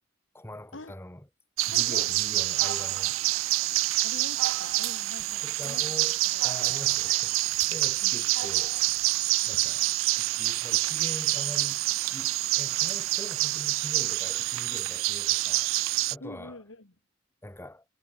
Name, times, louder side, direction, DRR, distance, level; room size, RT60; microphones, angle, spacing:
voice 1, 0.3-1.3 1.7-3.2 5.4-8.8 9.5-9.9 10.2-15.7 16.1-16.6 17.4-17.8, left 1 dB, 10° left, 1.9 m, -43 dB
sound 1, 1.6-16.2, right 19 dB, 75° right, 0.3 m, -27 dB
voice 2, 1.7-2.1 4.0-6.0 6.3-6.4 8.0-8.2 16.2-16.9, left 2 dB, 70° left, 2.5 m, -44 dB
head